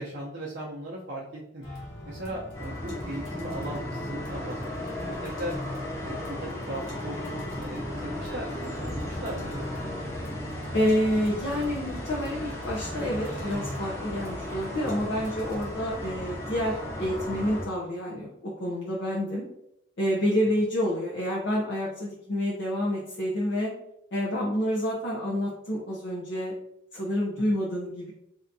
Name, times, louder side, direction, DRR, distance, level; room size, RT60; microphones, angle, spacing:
voice 1, 0.0-1.6 2.0-5.5 6.0-9.7 27.5-27.6, right 1 dB, 60° right, -6 dB, 0.6 m, -38 dB
sound 1, 1.6-16.9, equal, 85° left, 1.1 m, -41 dB
sound 2, 2.5-17.7, left 1 dB, 15° left, 0.7 m, -36 dB
voice 2, 10.7-19.4 20.0-23.7 24.1-26.5 26.9-28.1, equal, 60° left, -5 dB, 0.6 m, -28 dB
3.3 x 2.7 x 2.6 m, 0.79 s
head